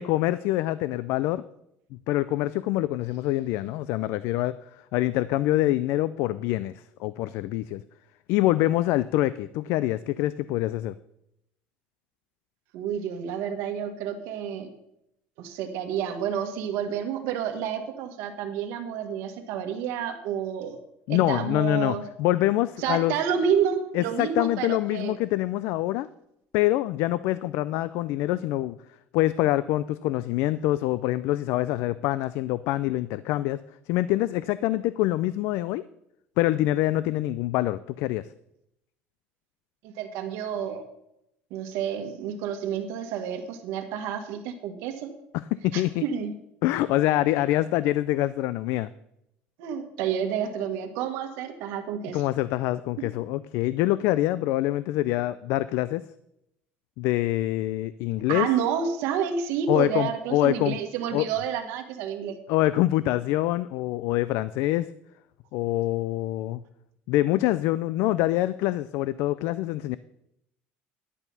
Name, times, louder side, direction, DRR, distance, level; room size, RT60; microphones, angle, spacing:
voice 1, 0.0-1.4 1.9-4.6 4.9-7.8 8.3-10.9 21.1-23.1 23.9-26.1 26.5-28.8 29.1-33.6 33.9-35.8 36.4-38.3 45.3-46.0 46.6-48.9 52.1-56.1 57.0-58.5 59.7-60.8 61.1-61.3 62.5-64.9 65.5-66.6 67.1-70.0, left 15 dB, 65° left, 17 dB, 0.3 m, -25 dB
voice 2, 12.7-14.7 15.4-20.8 21.1-22.0 22.8-25.2 39.8-40.8 41.5-45.1 45.7-46.3 49.6-52.2 58.3-62.4, right 8 dB, 70° right, 6 dB, 1.5 m, -29 dB
11.0 x 8.2 x 5.5 m, 0.81 s
cardioid pair, 165°, 5 cm